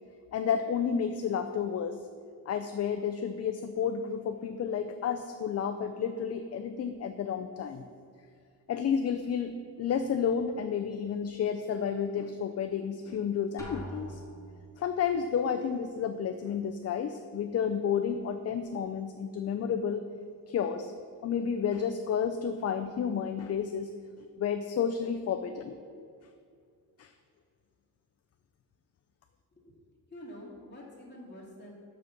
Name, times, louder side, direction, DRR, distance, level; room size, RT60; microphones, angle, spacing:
voice 1, 0.3-2.0 2.5-7.9 8.7-14.2 14.8-20.0 20.5-20.9 21.2-23.9 24.4-25.8 27.0-27.1, left 7 dB, 45° left, 7 dB, 0.4 m, -31 dB
Drum, 13.6-14.8, equal, 10° left, 1.3 m, -42 dB
voice 2, 30.1-31.7, left 1 dB, 30° left, -5 dB, 2.3 m, -47 dB
6.2 x 5.9 x 7.0 m, 2.3 s
wide cardioid pair, 140°, 36 cm